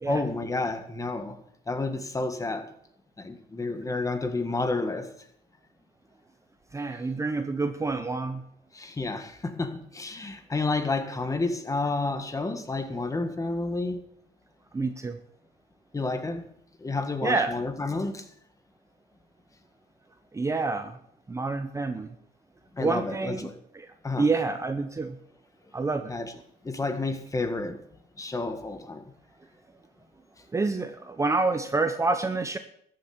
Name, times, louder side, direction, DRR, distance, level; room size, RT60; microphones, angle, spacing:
voice 1, 0.0-1.4 1.7-2.7 3.2-5.1 8.7-14.0 15.9-16.4 16.8-18.2 22.8-23.5 24.0-24.3 26.1-26.3 26.6-27.8 28.2-29.0, left 3 dB, 20° left, 1.7 m, -30 dB
voice 2, 6.7-8.4 14.7-15.2 17.2-17.5 20.3-20.9 21.3-22.1 22.8-23.5 24.2-25.2 25.7-26.1 30.5-32.6, right 3 dB, 15° right, 0.8 m, -27 dB
14.0 x 7.8 x 7.1 m
cardioid pair, 110°, 17 cm